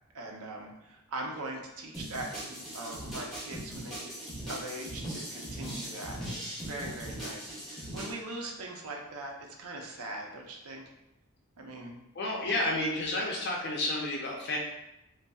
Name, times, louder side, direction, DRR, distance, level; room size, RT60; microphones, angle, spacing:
voice 1, 0.1-4.1 4.4-10.8 11.6-12.0 12.4-12.6, right 2 dB, 90° right, 1 dB, 0.6 m, -41 dB
sound 1, 1.9-8.1, right 1 dB, ahead, 1.0 m, -40 dB
voice 2, 12.2-14.6, left 1 dB, 50° left, -2 dB, 0.5 m, -31 dB
5.2 x 2.0 x 2.3 m, 0.90 s
head